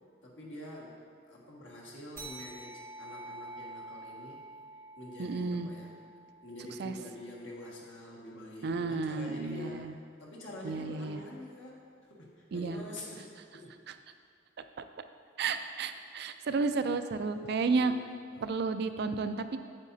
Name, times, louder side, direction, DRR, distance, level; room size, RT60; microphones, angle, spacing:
voice 1, 0.2-4.4 5.0-5.9 6.4-9.9 10.2-11.8 12.1-13.7 17.6-17.9 18.3-18.4, left 1 dB, 85° left, -3 dB, 1.7 m, -46 dB
sound 1, 2.2-7.1, right 2 dB, 15° right, 1.3 m, -48 dB
voice 2, 5.2-5.7 6.8-6.9 8.6-9.9 10.6-11.2 12.5-12.8 15.4-17.9 18.4-19.6, right 4 dB, 60° right, 9 dB, 0.4 m, -32 dB
8.7 x 8.2 x 2.7 m, 2.2 s
head